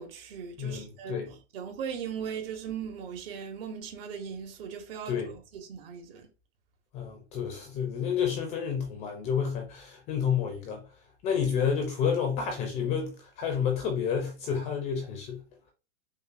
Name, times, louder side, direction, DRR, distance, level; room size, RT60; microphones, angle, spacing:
voice 1, 0.0-6.3, right 7 dB, 55° right, 1.2 m, -39 dB
voice 2, 0.6-1.3 5.1-5.3 6.9-10.8 11.2-15.4, left 7 dB, 20° left, 0.4 m, -30 dB
5.4 x 2.1 x 2.5 m
hypercardioid pair, 140°, 36 cm